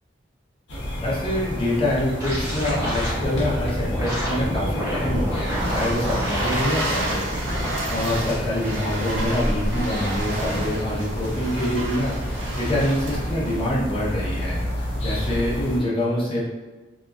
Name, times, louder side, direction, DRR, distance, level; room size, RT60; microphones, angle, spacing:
sound 1, 0.7-15.8, equal, 70° left, 0.7 m, -30 dB
voice 1, 1.0-7.2 7.6-16.4, left 1 dB, 30° left, -7 dB, 0.7 m, -26 dB
sound 2, 2.2-6.7 7.1-7.7, equal, 15° right, 0.8 m, -28 dB
sound 3, 5.1-13.7, right 1 dB, 80° right, 0.6 m, -31 dB
2.9 x 2.5 x 2.4 m, 1.2 s
head